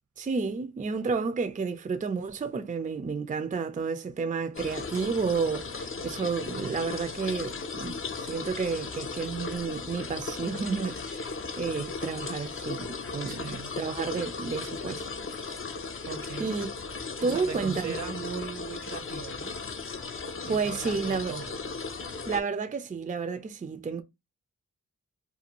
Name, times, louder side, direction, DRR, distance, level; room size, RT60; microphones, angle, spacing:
voice 1, 0.2-15.1 15.5-15.6 16.4-16.7 17.2-18.1 20.5-21.4 22.3-24.0, right 5 dB, 25° right, 0.4 m, -31 dB
sound 1, 4.5-22.4, left 4 dB, 45° left, 0.5 m, -37 dB
voice 2, 13.3-13.7 16.0-16.5 17.2-19.5 20.5-21.6, right 6 dB, 70° right, 0.7 m, -39 dB
2.5 x 2.3 x 2.8 m
cardioid pair, 50°, 31 cm